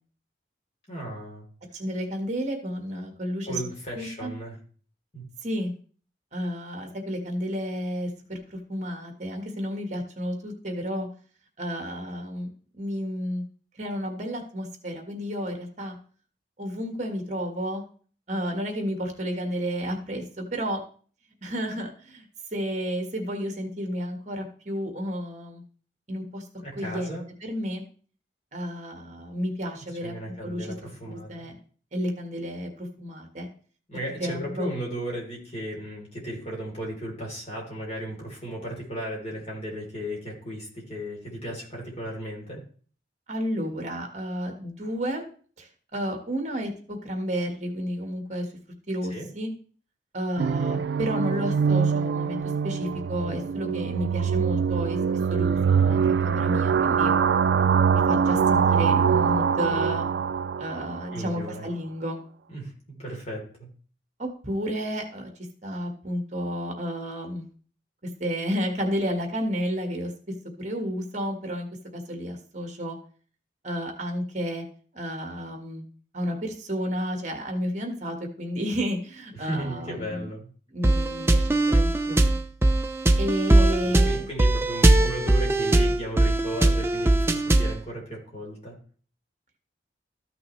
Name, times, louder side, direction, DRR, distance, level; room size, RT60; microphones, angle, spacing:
voice 1, 0.9-1.5 3.5-4.6 5.1-5.2 26.6-27.2 30.0-31.5 33.9-42.6 49.1-49.3 61.1-61.7 62.5-62.7 63.0-63.7 79.4-80.5 83.5-88.8, equal, 35° left, -3 dB, 3.4 m, -35 dB
voice 2, 1.7-3.6 3.9-4.3 5.4-5.7 6.3-11.1 11.6-12.5 12.7-13.4 13.8-15.9 16.6-17.8 18.3-20.8 21.4-22.2 22.5-25.6 26.1-26.4 26.8-27.8 28.5-30.7 31.1-31.5 31.9-33.5 34.2-34.7 43.3-45.3 45.6-48.5 48.9-49.5 50.1-52.4 52.6-55.0 55.3-57.1 57.9-60.0 60.6-62.2 64.2-65.3 65.6-67.4 68.2-70.1 70.6-71.7 71.9-73.0 73.6-74.6 74.9-75.8 76.1-80.3 80.7-82.2 83.2-84.3, equal, 40° right, 4 dB, 1.6 m, -31 dB
sound 1, 50.4-61.2, right 6 dB, 70° right, 0.3 m, -23 dB
sound 2, 80.8-87.8, right 1 dB, 15° right, 0.6 m, -20 dB
13.5 x 6.1 x 3.2 m, 0.44 s
head